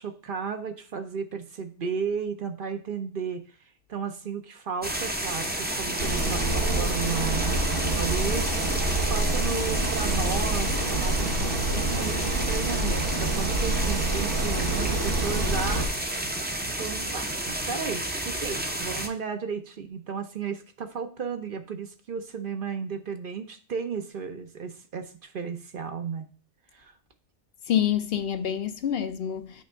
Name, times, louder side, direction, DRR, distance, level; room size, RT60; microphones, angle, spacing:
voice 1, 0.0-3.4 3.9-15.9 16.8-26.3 26.7-26.9, right 6 dB, 55° right, 0.8 m, -34 dB
sound 1, 4.8-19.1, right 1 dB, 10° right, 0.6 m, -31 dB
sound 2, 6.0-15.9, right 2 dB, 85° right, 1.4 m, -27 dB
voice 2, 27.7-29.6, left 9 dB, 65° left, 0.8 m, -27 dB
8.3 x 3.4 x 5.5 m
omnidirectional pair, 1.2 m